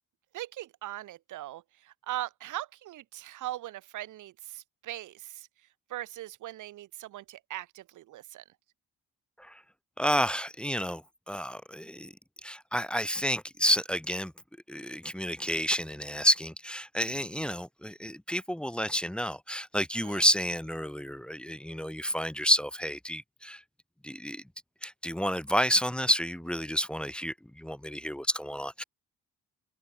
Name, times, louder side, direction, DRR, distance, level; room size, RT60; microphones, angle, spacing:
voice 1, 0.3-5.5 5.9-8.4 19.9-20.2, right 14 dB, 80° right, 2.5 m, -40 dB
voice 2, 10.0-12.1 12.4-14.3 14.7-23.6 24.0-24.4 24.8-28.8, equal, 5° left, 1.2 m, -30 dB
open air
cardioid pair, 90°, 30 cm